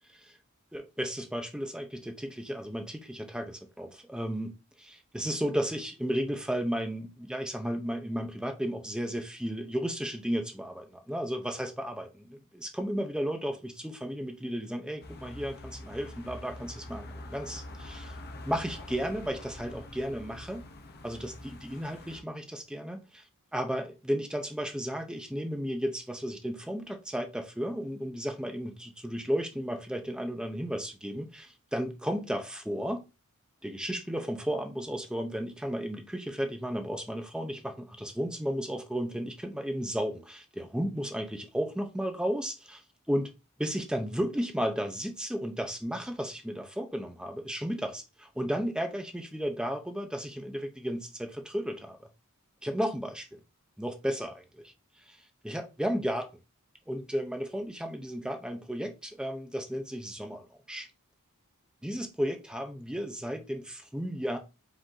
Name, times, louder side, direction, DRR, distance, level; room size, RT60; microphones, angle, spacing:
voice 1, 0.7-4.5 4.8-18.1 18.4-20.6 21.0-23.2 23.5-33.0 33.6-42.8 43.1-43.3 43.6-52.1 52.6-53.4 53.8-54.7 55.1-55.2 55.4-56.3 56.9-60.9 61.8-64.4, equal, 5° right, 0.6 m, -34 dB
sound 1, 15.0-22.2, left 1 dB, 45° left, 0.7 m, -45 dB
5.1 x 2.7 x 3.8 m
head